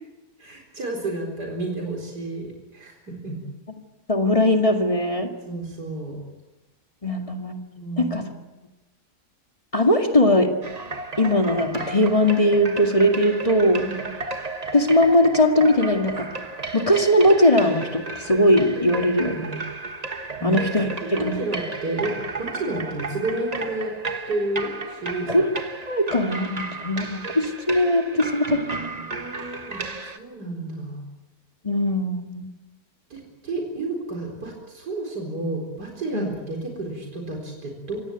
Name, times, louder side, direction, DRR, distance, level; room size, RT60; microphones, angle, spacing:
voice 1, 0.4-3.4 5.5-6.2 7.8-8.1 13.9-14.0 20.4-20.5 21.0-23.9 24.3-25.3 29.1-29.8 30.1-31.0 33.1-38.0, right 2 dB, 85° right, 1 dB, 4.7 m, -31 dB
voice 2, 4.1-5.3 7.0-7.6 8.0-8.2 9.7-10.5 11.2-13.9 14.7-16.3 16.7-19.6 20.4-21.5 25.3-25.5 25.9-28.8 31.6-32.5 36.1-36.3, left 1 dB, 20° left, 4 dB, 2.1 m, -20 dB
sound 1, 10.6-30.2, right 3 dB, 25° right, 1.2 m, -33 dB
26.5 x 17.0 x 9.2 m, 1.1 s
omnidirectional pair, 1.7 m